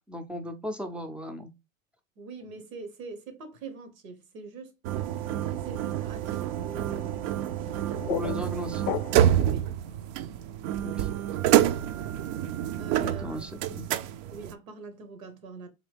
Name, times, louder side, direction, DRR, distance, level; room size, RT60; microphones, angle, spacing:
voice 1, 0.1-1.5 8.1-8.9 10.8-11.1 13.0-13.9, equal, 5° right, 0.4 m, -36 dB
voice 2, 2.2-4.8 5.6-7.4 9.4-9.8 12.8-13.7 14.2-15.7, right 4 dB, 80° right, 1.1 m, -43 dB
sound 1, 4.8-14.5, right 11 dB, 60° right, 0.5 m, -28 dB
sound 2, 7.6-9.5, left 13 dB, 55° left, 0.5 m, -35 dB
3.9 x 2.8 x 3.3 m
hypercardioid pair, 90°, 40 cm